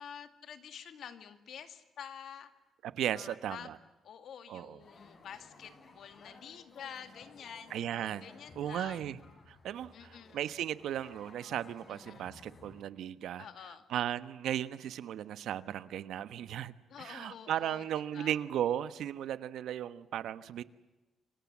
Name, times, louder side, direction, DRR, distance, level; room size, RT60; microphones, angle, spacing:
voice 1, 0.0-2.5 3.1-3.7 4.0-7.9 8.2-9.1 9.9-10.4 11.9-12.3 13.4-13.8 16.9-17.8 18.1-18.4, left 8 dB, 60° left, 10 dB, 2.3 m, -48 dB
voice 2, 2.8-3.8 4.5-4.8 7.7-8.2 8.6-9.2 9.5-13.5 13.9-20.6, right 10 dB, 75° right, 14 dB, 1.2 m, -36 dB
sound 1, 4.8-12.8, left 3 dB, 30° left, 5.0 m, -56 dB
29.5 x 25.5 x 7.5 m, 1.1 s
cardioid pair, 150°, 0 cm